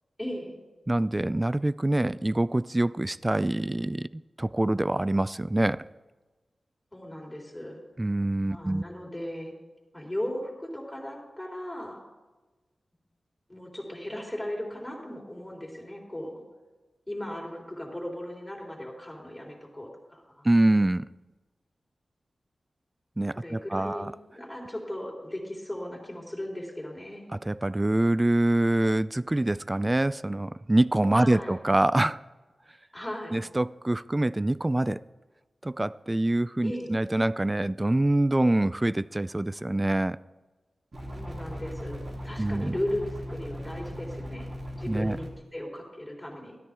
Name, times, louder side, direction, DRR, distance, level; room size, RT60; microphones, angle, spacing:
voice 1, 0.2-0.6 6.9-7.8 8.5-9.5 9.9-12.0 13.5-16.4 17.1-20.5 23.3-27.3 31.1-31.6 32.9-33.4 36.6-36.9 41.1-44.5 44.8-46.6, left 1 dB, 15° left, 3.6 m, -37 dB
voice 2, 0.9-4.1 4.4-5.8 8.0-8.8 20.4-21.1 23.2-24.1 27.5-32.2 33.3-35.0 35.6-40.2 42.4-42.7 44.9-45.2, right 1 dB, 20° right, 0.3 m, -25 dB
sound 1, 40.9-45.3, equal, 55° right, 3.0 m, -38 dB
13.5 x 13.0 x 3.6 m
wide cardioid pair, 70°, 0 cm